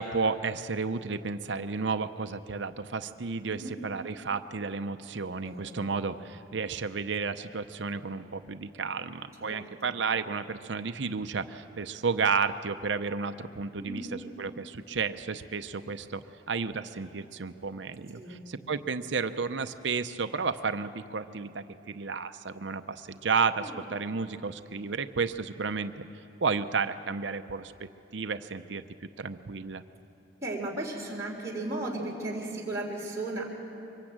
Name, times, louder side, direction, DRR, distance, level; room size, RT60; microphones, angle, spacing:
voice 1, 0.0-26.0 26.4-28.8 29.2-29.8, right 5 dB, 70° right, 10 dB, 0.7 m, -32 dB
voice 2, 3.4-3.7 5.4-5.8 9.4-9.7 13.8-14.0 18.1-18.4 23.6-23.9 30.4-33.4, right 2 dB, 15° right, -4 dB, 3.7 m, -35 dB
24.5 x 21.0 x 8.8 m, 2.8 s
head